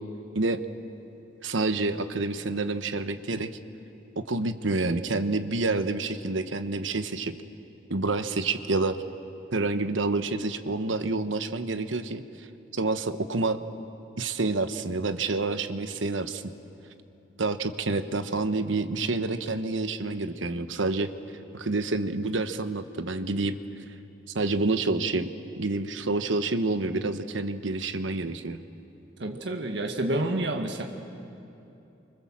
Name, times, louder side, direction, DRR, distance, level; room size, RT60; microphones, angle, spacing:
voice 1, 1.4-3.5 4.2-7.3 7.9-9.0 9.5-12.2 12.7-13.6 14.2-16.5 17.4-21.1 21.5-23.6 24.3-25.3 25.6-28.6, right 3 dB, 85° right, 10 dB, 1.1 m, -28 dB
voice 2, 29.2-30.8, right 1 dB, 65° right, 3 dB, 1.6 m, -29 dB
29.5 x 25.0 x 7.4 m, 2.8 s
head